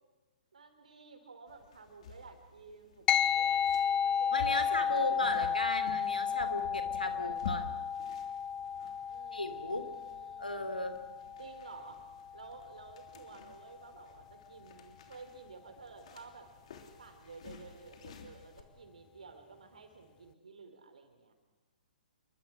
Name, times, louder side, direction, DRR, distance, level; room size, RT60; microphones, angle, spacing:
voice 1, 0.5-5.4 9.1-10.8 11.4-12.0 12.3-16.5 17.0-21.3, right 4 dB, 65° right, 6 dB, 4.8 m, -53 dB
sound 1, 1.5-18.6, left 5 dB, 50° left, 3.1 m, -50 dB
sound 2, 3.1-12.8, left 8 dB, 20° left, 0.7 m, -33 dB
voice 2, 4.3-7.8 9.3-9.9 10.4-11.0, left 2 dB, 80° left, 9 dB, 3.1 m, -35 dB
28.5 x 23.5 x 6.4 m, 1.2 s
figure-of-eight pair, 120°, 5 cm